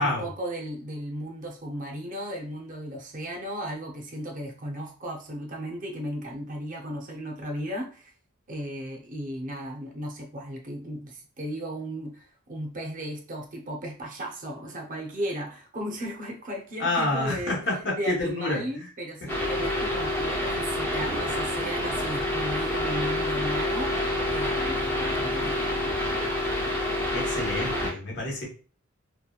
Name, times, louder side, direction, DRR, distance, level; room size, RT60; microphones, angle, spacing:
voice 1, 0.0-8.1 8.5-17.6 17.9-25.6, equal, 40° right, 1 dB, 0.5 m, -35 dB
voice 2, 16.8-18.9 19.6-19.7 27.1-28.5, left 2 dB, 55° left, -2 dB, 1.0 m, -28 dB
sound 1, 19.3-27.9, left 1 dB, 10° left, 0.5 m, -28 dB
2.8 x 2.1 x 2.3 m, 0.38 s
head